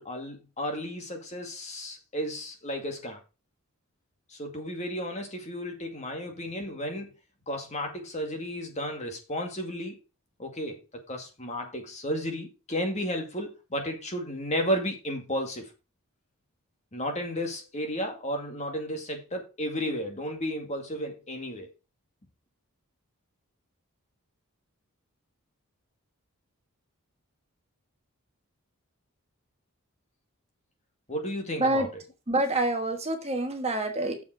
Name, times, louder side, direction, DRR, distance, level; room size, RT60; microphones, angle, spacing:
voice 1, 0.0-3.2 4.3-7.1 7.5-10.0 10.4-15.7 16.9-21.7 31.1-31.9, equal, 30° left, 3 dB, 2.2 m, -33 dB
voice 2, 32.3-34.2, right 2 dB, 30° right, 5 dB, 1.4 m, -27 dB
7.5 x 7.1 x 4.9 m, 0.29 s
head